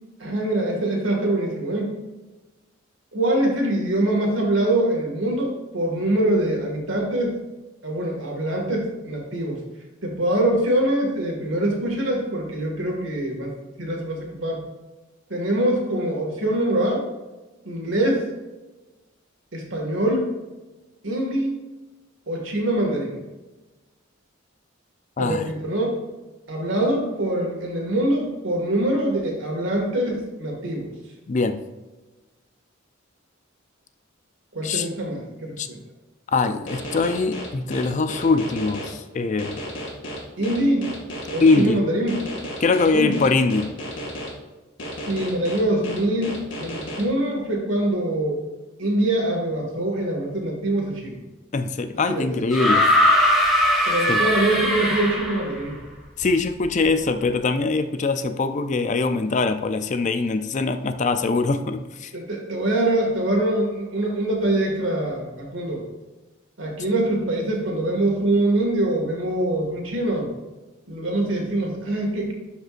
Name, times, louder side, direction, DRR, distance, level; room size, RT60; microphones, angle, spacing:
voice 1, 0.2-2.0 3.1-7.4 7.8-9.6 10.0-13.5 13.8-14.7 15.3-17.0 17.6-18.3 19.5-20.3 21.0-21.5 22.3-23.2 25.2-26.0 26.5-30.9 34.5-35.8 40.4-40.9 41.3-42.2 42.9-43.2 45.1-48.4 48.8-51.2 52.1-52.2 53.9-55.8 62.1-65.8 66.6-70.3 70.9-72.3, right 1 dB, 70° right, 0 dB, 2.1 m, -24 dB
voice 2, 25.2-25.5 31.3-31.6 34.6-34.9 35.6-35.7 36.3-39.6 41.4-41.8 42.6-43.7 51.5-52.9 54.1-54.2 56.2-62.1, left 3 dB, 35° left, 10 dB, 0.4 m, -22 dB
sound 1, 36.7-38.9 39.4-41.6 42.1-44.3 44.8-47.0, equal, 70° left, 2.2 m, -33 dB
sound 2, 52.5-55.6 56.8-56.9, equal, ahead, 1.6 m, -20 dB
12.0 x 5.2 x 2.5 m, 1.1 s
head